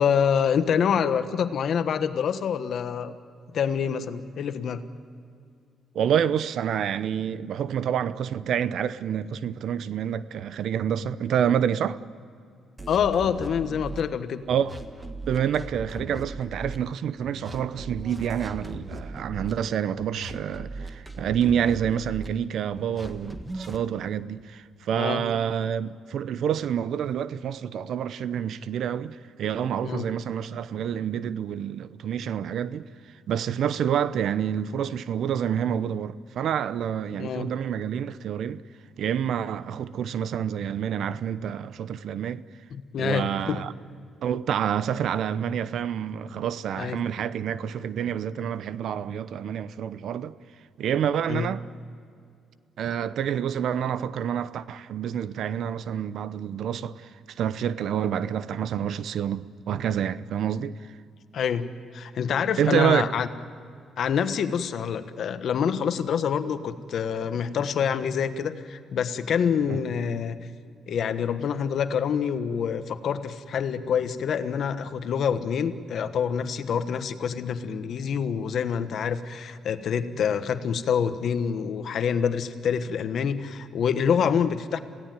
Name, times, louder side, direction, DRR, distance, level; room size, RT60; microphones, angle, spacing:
voice 1, 0.0-3.1 3.5-4.8 12.9-14.4 25.0-25.2 29.8-30.1 37.2-37.5 42.7-43.6 46.8-47.0 51.3-51.5 61.3-63.3 64.0-70.4 70.9-84.8, left 7 dB, 65° left, 1.3 m, -26 dB
voice 2, 5.9-12.0 14.5-14.7 15.2-32.9 33.3-38.6 39.0-42.4 43.0-43.7 44.2-50.3 50.8-51.7 52.8-60.8 62.6-63.1 69.7-69.8, right 9 dB, 70° right, 0.7 m, -28 dB
sound 1, 12.8-14.0 14.5-16.8 17.2-19.5 20.0-22.3 22.8-23.8, right 2 dB, 20° right, 1.7 m, -38 dB
27.5 x 17.0 x 9.1 m
cardioid pair, 90°, 0 cm